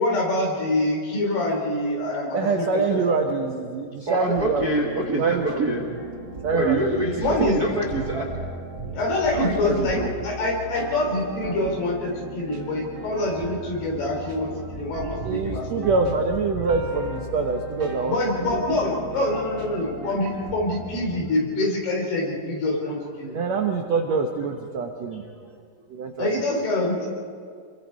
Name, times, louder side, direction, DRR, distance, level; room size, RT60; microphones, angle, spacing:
voice 1, 0.0-3.0 7.2-7.6 8.9-10.0 10.2-15.9 18.1-23.4 26.2-27.1, left 2 dB, 70° left, -1 dB, 5.7 m, -25 dB
voice 2, 2.3-4.7 5.2-5.6 6.4-7.9 15.2-18.6 23.3-25.2 25.9-26.4, right 4 dB, 85° right, 3 dB, 1.5 m, -25 dB
voice 3, 4.1-5.8 6.5-8.5 9.3-10.1, right 1 dB, 50° right, -1 dB, 1.1 m, -26 dB
sound 1, 4.3-21.2, right 2 dB, 30° right, 2.4 m, -36 dB
28.0 x 22.5 x 4.7 m, 2.1 s
omnidirectional pair, 4.8 m